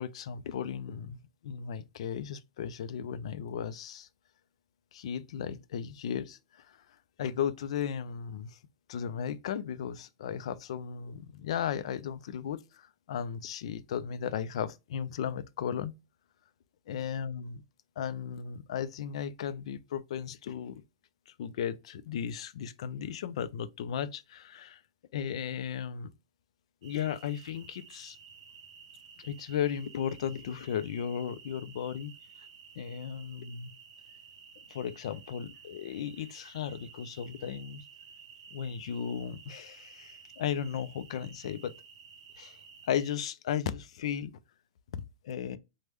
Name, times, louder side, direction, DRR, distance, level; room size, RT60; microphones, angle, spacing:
voice 1, 0.0-4.1 4.9-6.8 7.2-8.6 8.9-15.9 16.9-17.6 18.0-20.8 21.3-24.8 25.1-26.1 26.8-28.2 29.2-32.1 32.8-33.7 34.7-37.8 38.5-41.7 42.4-42.6 42.9-44.3 45.2-45.6, left 8 dB, 60° left, 0.3 m, -35 dB
sound 1, 26.8-43.2, right 6 dB, 60° right, 0.6 m, -53 dB
3.3 x 2.1 x 3.1 m
supercardioid pair, 175°, 4 cm